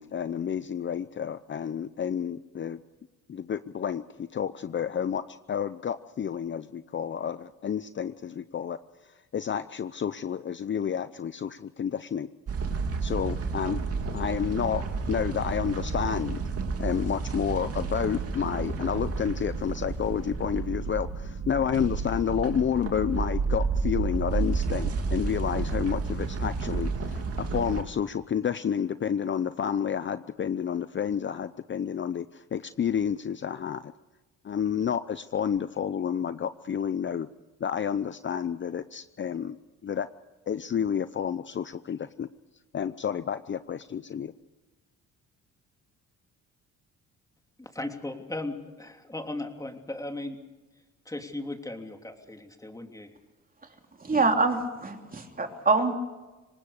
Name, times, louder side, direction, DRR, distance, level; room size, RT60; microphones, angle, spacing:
voice 1, 0.0-2.8 3.3-8.8 9.3-12.3 13.0-13.8 14.1-16.4 16.8-33.9 34.4-37.3 37.6-39.6 39.8-40.1 40.5-42.3 42.7-44.3, left 8 dB, 40° left, 13 dB, 0.7 m, -30 dB
sound 1, 12.5-27.8, right 4 dB, 50° right, 2.7 m, -31 dB
voice 2, 47.6-50.4 51.0-53.1, left 2 dB, 10° left, 4 dB, 3.1 m, -37 dB
voice 3, 54.0-55.9, right 3 dB, 30° right, 4 dB, 3.2 m, -25 dB
25.0 x 19.5 x 6.6 m, 1.1 s
cardioid pair, 90°, 30 cm